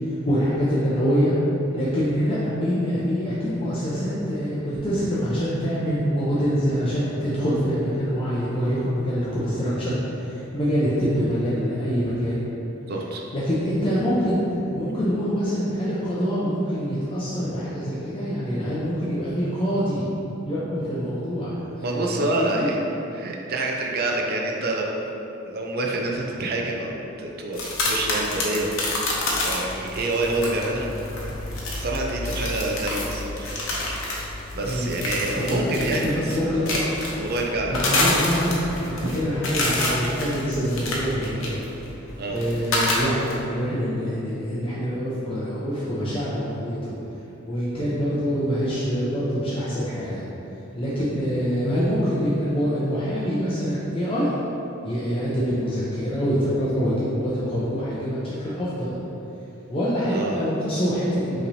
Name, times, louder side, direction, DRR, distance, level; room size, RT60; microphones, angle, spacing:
voice 1, 0.2-1.3 1.7-12.4 13.3-20.1 20.4-22.7 34.6-34.9 35.3-36.7 37.7-38.6 38.9-41.7 42.3-46.9 47.5-50.2 50.8-54.3 54.8-59.0 59.7-61.5, equal, 25° left, -9 dB, 0.6 m, -25 dB
voice 2, 12.9-13.2 21.8-22.8 23.1-25.0 25.4-27.6 27.8-29.0 29.4-30.9 31.7-33.5 34.5-36.7 37.1-37.7 39.0-39.1 42.2-42.4 47.7-47.9 60.1-60.4, right 2 dB, 50° right, 0 dB, 0.5 m, -27 dB
sound 1, 27.5-43.3, left 2 dB, 70° left, 0.8 m, -28 dB
5.6 x 3.1 x 2.7 m, 3.0 s
head